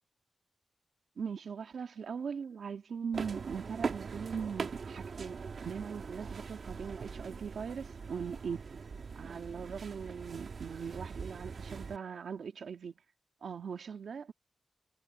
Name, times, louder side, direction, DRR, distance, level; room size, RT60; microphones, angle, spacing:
voice 1, 1.2-8.6 9.2-12.9 13.4-14.3, right 6 dB, 80° right, 2.2 m, -40 dB
sound 1, 3.1-12.0, right 5 dB, 60° right, 1.8 m, -42 dB
wide cardioid pair, 150°, 0 cm